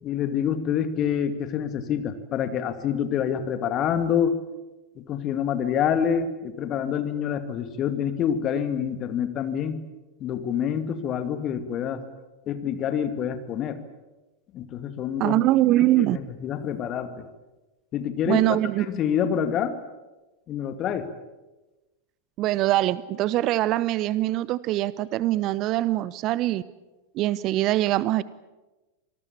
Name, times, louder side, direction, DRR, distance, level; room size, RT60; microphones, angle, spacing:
voice 1, 0.0-4.4 5.0-9.8 10.2-12.0 12.5-13.8 14.5-15.4 16.0-17.3 17.9-18.4 18.8-19.8 20.5-21.1, left 8 dB, 30° left, 9 dB, 2.4 m, -27 dB
voice 2, 15.2-16.2 18.3-18.9 22.4-26.6 27.1-28.2, right 15 dB, 40° right, 19 dB, 0.7 m, -23 dB
27.0 x 19.5 x 8.5 m, 1.1 s
figure-of-eight pair, 90°, 0 cm